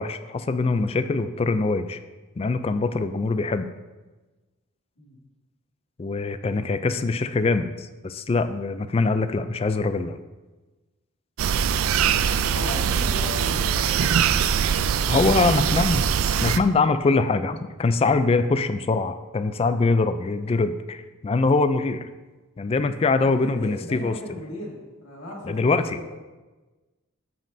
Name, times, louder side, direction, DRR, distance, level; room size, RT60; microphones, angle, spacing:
voice 1, 0.0-2.0 2.4-3.7 6.0-10.2 15.1-16.1 16.4-22.1 22.6-24.1 25.4-26.1, left 3 dB, 25° left, 10 dB, 0.3 m, -23 dB
sound 1, 11.4-16.6, right 7 dB, 80° right, 0.4 m, -22 dB
voice 2, 11.9-14.2 23.4-26.1, left 1 dB, 75° left, -4 dB, 2.2 m, -37 dB
13.0 x 5.2 x 2.7 m, 1.2 s
head